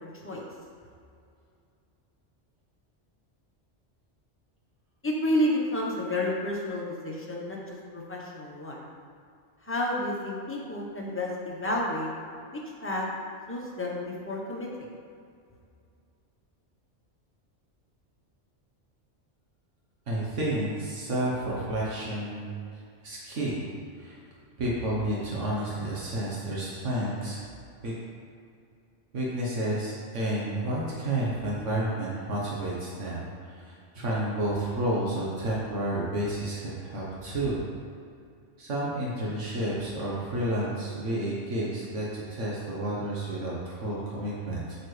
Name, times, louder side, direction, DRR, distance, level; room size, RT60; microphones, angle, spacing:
voice 1, 0.0-0.4 5.0-8.8 9.6-12.1 12.8-13.1 13.5-14.9, left 1 dB, 10° left, -3 dB, 1.1 m, -30 dB
voice 2, 20.1-22.5 23.0-23.6 24.0-24.2 24.6-27.4 27.8-27.9 29.1-37.6 38.6-44.8, right 1 dB, 80° right, -5 dB, 1.6 m, -30 dB
8.5 x 7.0 x 3.3 m, 2.4 s
omnidirectional pair, 1.2 m